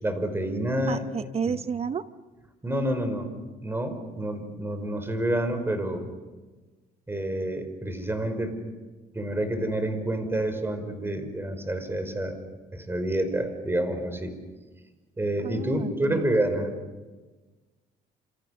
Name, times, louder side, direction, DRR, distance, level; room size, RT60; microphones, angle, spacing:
voice 1, 0.0-1.0 1.5-1.6 2.6-3.3 3.6-6.1 7.1-8.6 9.1-12.4 12.7-14.3 15.2-16.7, right 1 dB, 15° right, 8 dB, 5.3 m, -28 dB
voice 2, 0.9-2.1 15.4-16.2, right 6 dB, 35° right, 12 dB, 0.9 m, -31 dB
29.5 x 28.5 x 6.7 m, 1.3 s
cardioid pair, 110°, 17 cm